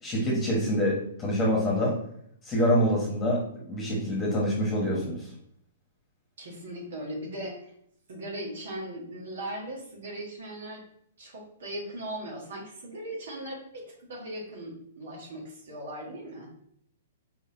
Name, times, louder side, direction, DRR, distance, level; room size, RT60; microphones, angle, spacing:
voice 1, 0.0-1.9 2.4-3.4 3.7-5.3, equal, 20° left, -4 dB, 1.4 m, -26 dB
voice 2, 6.4-7.7 8.1-10.8 11.2-16.5, right 1 dB, 65° right, -2 dB, 1.6 m, -38 dB
4.6 x 4.0 x 2.8 m, 0.69 s
hypercardioid pair, 120°, 0 cm